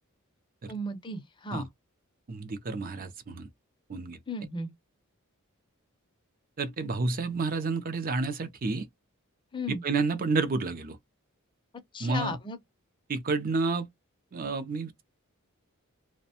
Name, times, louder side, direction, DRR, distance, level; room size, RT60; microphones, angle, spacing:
voice 1, 0.7-1.7 4.3-4.7 9.5-9.8 11.9-12.6, left 1 dB, 20° left, 0.5 m, -35 dB
voice 2, 2.3-3.5 3.9-4.2 6.6-8.9 9.7-11.0 12.0-12.4 13.1-13.9 14.3-15.0, right 3 dB, 40° right, 0.5 m, -30 dB
2.5 x 2.1 x 2.7 m
head